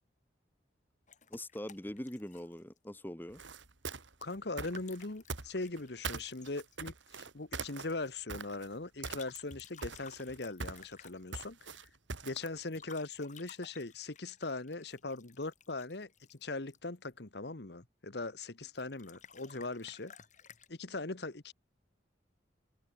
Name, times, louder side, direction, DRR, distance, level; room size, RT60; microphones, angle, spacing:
sound 1, 1.1-2.9 4.5-6.8 9.0-11.4 12.6-17.2 18.6-20.7, left 6 dB, 40° left, 6.8 m, -56 dB
voice 1, 1.3-3.4, left 1 dB, 10° left, 1.3 m, -42 dB
sound 2, 3.3-5.8 6.0-8.7 9.0-9.6 9.8-12.6, right 4 dB, 85° right, 2.7 m, -42 dB
voice 2, 4.2-11.9 12.2-20.1 20.7-21.5, left 3 dB, 60° left, 1.3 m, -40 dB
head